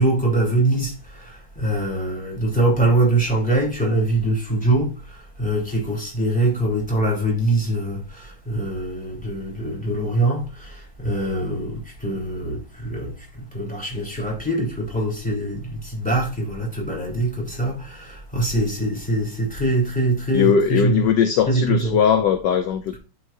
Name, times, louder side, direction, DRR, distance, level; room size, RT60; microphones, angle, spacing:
voice 1, 0.0-21.1 21.5-22.1 22.9-23.0, right 2 dB, 5° left, 3.3 m, -23 dB
voice 2, 20.3-23.0, left 7 dB, 65° left, 1.2 m, -19 dB
11.0 x 4.9 x 2.6 m
omnidirectional pair, 2.4 m